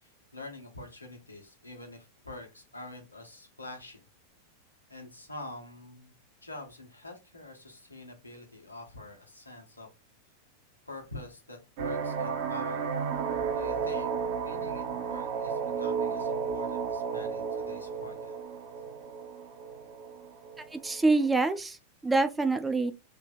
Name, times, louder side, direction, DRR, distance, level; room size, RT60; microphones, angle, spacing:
voice 1, 0.0-4.0 4.9-6.1 6.4-9.9 10.8-12.8 13.5-14.1 14.4-18.3 22.6-22.8, left 2 dB, 85° left, 1.2 m, -46 dB
sound 1, 11.8-21.3, right 6 dB, 50° right, 0.7 m, -33 dB
voice 2, 20.7-21.8 22.0-22.9, right 3 dB, 10° right, 0.4 m, -25 dB
3.4 x 2.9 x 4.0 m
figure-of-eight pair, 90°, 0 cm